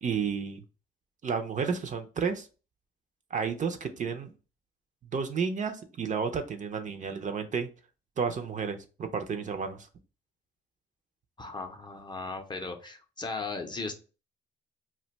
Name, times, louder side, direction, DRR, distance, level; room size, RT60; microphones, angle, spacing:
voice 1, 0.0-0.6 1.2-2.5 3.3-4.3 5.1-7.7 8.2-9.9, right 6 dB, 40° right, 7 dB, 0.5 m, -31 dB
voice 2, 11.4-13.9, left 3 dB, 20° left, 5 dB, 0.5 m, -37 dB
2.4 x 2.2 x 3.9 m, 0.34 s
cardioid pair, 90°, 20 cm